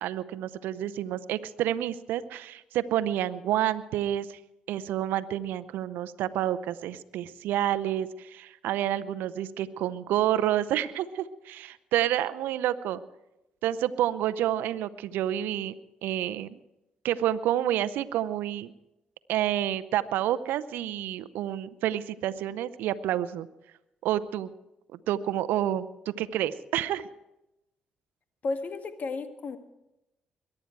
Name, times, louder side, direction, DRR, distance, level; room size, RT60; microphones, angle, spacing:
voice 1, 0.0-4.4 4.7-13.0 13.6-15.7 16.0-16.6 17.0-18.7 19.3-23.5 24.0-24.5 25.1-25.9 26.2-27.1, right 12 dB, 80° right, 13 dB, 0.6 m, -29 dB
voice 2, 28.4-29.6, left 3 dB, 55° left, 7 dB, 1.8 m, -33 dB
22.5 x 11.0 x 4.6 m, 0.89 s
supercardioid pair, 55°, 3 cm